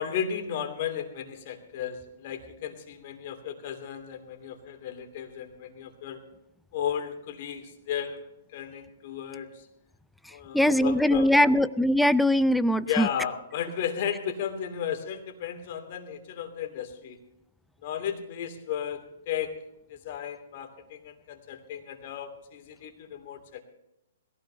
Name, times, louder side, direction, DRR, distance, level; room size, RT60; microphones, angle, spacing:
voice 1, 0.0-6.2 6.7-9.7 10.3-11.6 12.9-17.2 17.8-19.5 19.9-23.6, left 8 dB, 45° left, 5 dB, 2.7 m, -34 dB
voice 2, 10.5-13.1, left 1 dB, ahead, 16 dB, 0.5 m, -21 dB
21.5 x 15.5 x 2.9 m, 0.84 s
figure-of-eight pair, 115°, 0 cm